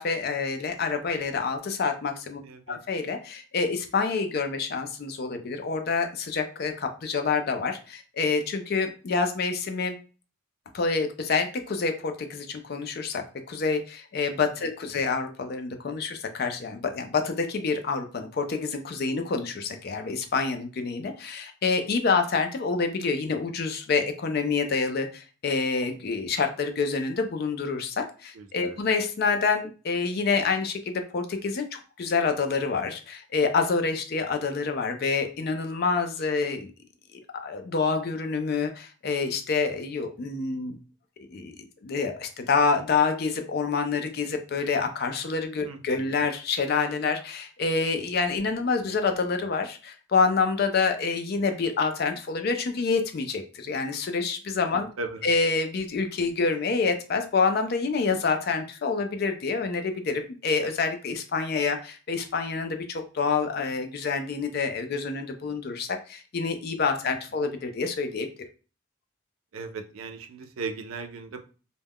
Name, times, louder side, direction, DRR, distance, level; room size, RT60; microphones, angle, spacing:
voice 1, 0.0-2.4 2.7-10.0 10.7-36.7 37.1-40.8 41.3-41.5 41.8-54.9 55.2-68.3, left 4 dB, 50° left, 6 dB, 0.4 m, -27 dB
voice 2, 2.4-2.8 28.3-28.8 45.6-46.2 55.0-55.3 67.0-67.1 69.5-71.4, right 4 dB, 80° right, 7 dB, 0.4 m, -38 dB
2.2 x 2.1 x 3.4 m, 0.35 s
head